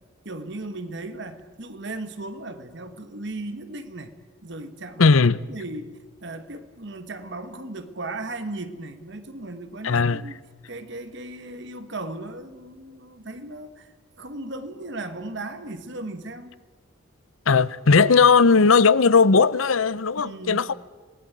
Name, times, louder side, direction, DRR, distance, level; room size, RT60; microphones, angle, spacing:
voice 1, 0.2-4.1 4.4-5.1 5.5-10.4 10.7-16.6 20.2-20.7, right 2 dB, 55° right, 1.6 m, -36 dB
voice 2, 5.0-5.4 9.8-10.2 17.5-20.7, left 5 dB, 75° left, 0.8 m, -17 dB
26.5 x 19.5 x 9.2 m
head